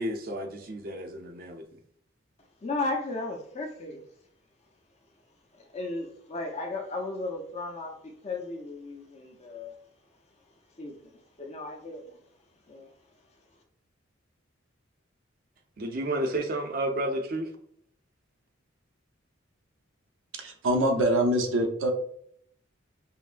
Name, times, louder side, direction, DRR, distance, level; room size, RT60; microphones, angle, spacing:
voice 1, 0.0-1.6 15.8-17.5, right 1 dB, 45° right, 0.6 m, -31 dB
voice 2, 2.6-4.0 5.5-9.7 10.8-12.2 12.7-12.9, left 2 dB, 35° left, 0.6 m, -35 dB
voice 3, 20.4-21.9, right 1 dB, 85° right, 0.7 m, -24 dB
5.6 x 2.1 x 2.5 m
head